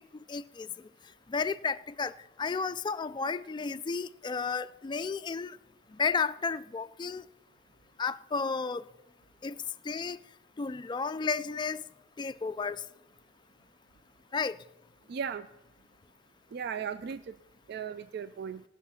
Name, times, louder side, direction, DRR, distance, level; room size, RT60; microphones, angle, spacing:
voice 1, 0.3-0.7 1.3-2.1 2.4-5.6 6.0-7.2 8.0-8.8 9.4-9.6 9.9-10.2 10.6-11.8 12.2-12.8 14.3-14.6, left 5 dB, 25° left, 0.3 m, -32 dB
voice 2, 15.1-15.5 16.5-17.3 17.7-18.6, right 7 dB, 60° right, 0.3 m, -36 dB
17.0 x 6.4 x 5.7 m
head